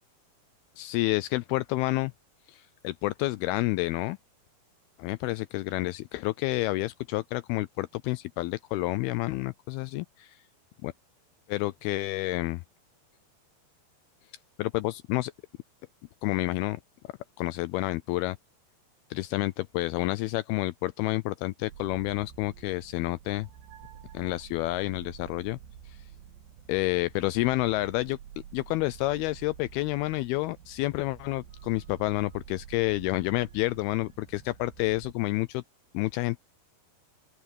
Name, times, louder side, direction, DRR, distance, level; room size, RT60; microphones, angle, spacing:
voice 1, 0.8-2.1 2.5-4.2 5.0-10.4 10.8-10.9 11.5-12.6 14.6-15.3 16.2-16.8 17.4-18.4 19.1-23.5 24.1-25.6 25.9-26.0 26.7-28.2 28.5-35.6 35.9-36.4, left 19 dB, 85° left, 2.2 m, -29 dB
sound 1, 21.7-35.1, right 9 dB, 90° right, 3.7 m, -49 dB
open air
omnidirectional pair, 4.8 m